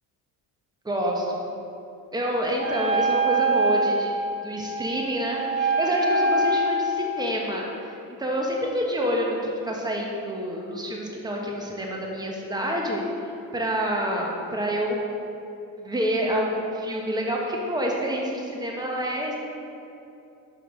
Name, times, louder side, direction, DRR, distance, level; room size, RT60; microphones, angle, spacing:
voice 1, 0.8-1.5 2.1-4.1 4.4-13.0 13.5-15.0 15.8-19.4, equal, 10° right, -1 dB, 1.2 m, -27 dB
Wind instrument woodwind instrument, 2.6-7.1, right 2 dB, 85° right, 1.3 m, -24 dB
6.3 x 5.0 x 5.0 m, 2.7 s
supercardioid pair, 75°, 45 cm